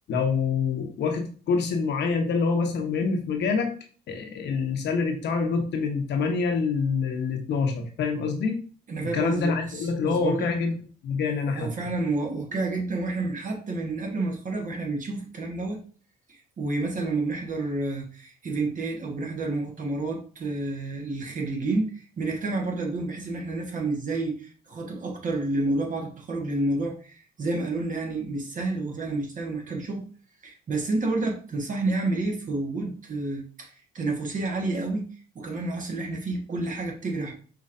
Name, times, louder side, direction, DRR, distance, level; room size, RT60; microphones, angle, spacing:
voice 1, 0.1-3.7 4.1-8.6 9.1-10.7 11.0-11.7, left 5 dB, 70° left, 4 dB, 1.0 m, -26 dB
voice 2, 8.9-10.5 11.5-15.8 16.3-30.0 30.4-35.1 35.3-37.3, right 2 dB, 45° right, 1 dB, 1.4 m, -29 dB
5.5 x 3.1 x 2.6 m, 0.40 s
cardioid pair, 80°, 19 cm